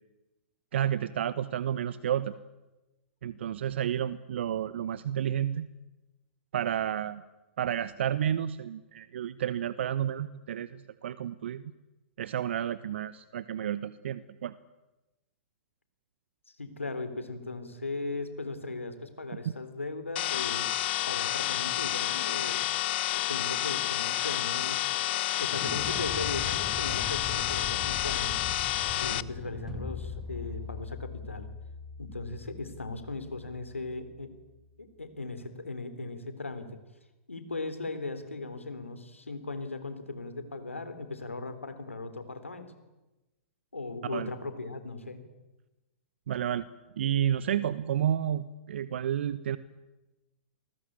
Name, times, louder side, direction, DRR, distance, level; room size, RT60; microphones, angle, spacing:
voice 1, 0.7-2.3 3.2-5.7 6.5-7.2 7.6-11.7 12.2-14.5 44.1-44.3 46.3-46.7 47.0-49.6, right 10 dB, 65° right, 16 dB, 1.0 m, -31 dB
voice 2, 16.6-20.7 21.1-22.6 23.1-25.1 25.4-28.4 29.0-31.5 32.0-34.3 34.8-36.8 37.3-42.7 43.7-45.2, left 3 dB, 90° left, 10 dB, 3.7 m, -38 dB
sound 1, 20.2-29.2, left 15 dB, 55° left, 0.9 m, -30 dB
Explosion, 25.5-31.0, left 5 dB, 25° left, 6.8 m, -40 dB
sound 2, 29.7-34.7, left 4 dB, 5° right, 3.7 m, -43 dB
28.0 x 20.0 x 8.7 m, 1.1 s
figure-of-eight pair, 110°, 7 cm